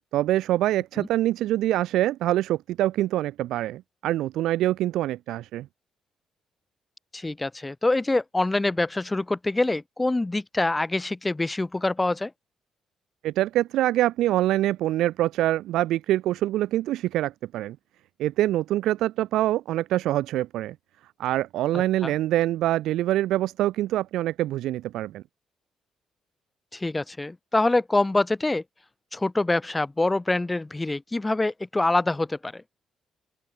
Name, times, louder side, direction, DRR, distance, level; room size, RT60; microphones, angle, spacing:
voice 1, 0.1-5.7 13.2-17.8 18.2-20.7 21.2-25.2, right 14 dB, 85° right, 2.1 m, -25 dB
voice 2, 7.1-12.3 21.7-22.1 26.7-28.6 29.1-32.6, left 2 dB, 15° left, 4.9 m, -25 dB
open air
cardioid pair, 90°, 0 cm